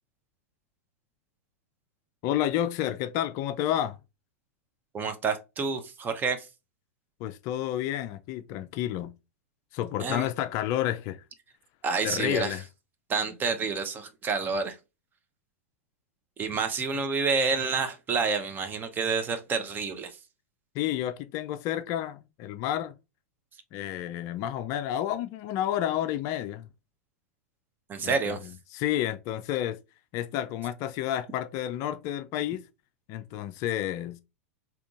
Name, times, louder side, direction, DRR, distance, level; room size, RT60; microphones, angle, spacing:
voice 1, 2.2-4.0 7.2-9.1 9.7-11.2 12.0-12.6 20.7-22.9 23.7-26.7 28.0-28.4 28.7-29.8 30.1-32.6 33.1-34.2, left 12 dB, 45° left, 0.4 m, -30 dB
voice 2, 4.9-6.5 10.0-10.3 11.8-12.6 13.1-14.8 16.4-20.2 27.9-28.4, right 4 dB, 25° right, 0.6 m, -28 dB
3.7 x 2.8 x 2.4 m
hypercardioid pair, 110°, 8 cm